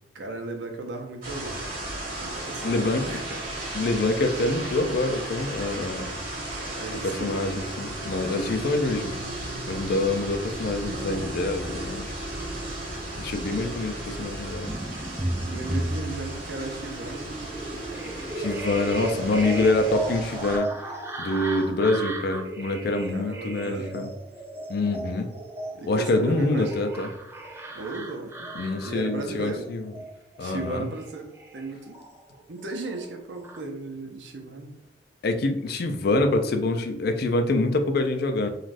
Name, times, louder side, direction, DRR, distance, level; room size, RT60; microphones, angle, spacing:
voice 1, 0.1-1.7 2.0-3.4 6.6-7.4 15.5-17.3 23.1-24.1 25.7-26.8 27.7-28.5 28.8-30.1 30.4-32.0 32.5-34.7, right 2 dB, 85° right, 3 dB, 0.6 m, -36 dB
sound 1, 1.2-20.6, right 1 dB, 55° right, 0.9 m, -35 dB
voice 2, 2.6-3.1 3.7-6.1 7.0-9.2 9.7-12.1 13.2-14.7 18.4-20.7 21.2-24.1 24.7-25.3 25.8-27.1 28.6-29.9 30.4-30.9 35.2-38.5, left 2 dB, 60° left, 7 dB, 0.4 m, -25 dB
sound 2, 14.7-32.4 32.7-33.6, right 1 dB, 15° right, 0.4 m, -35 dB
2.5 x 2.3 x 3.2 m, 0.81 s
head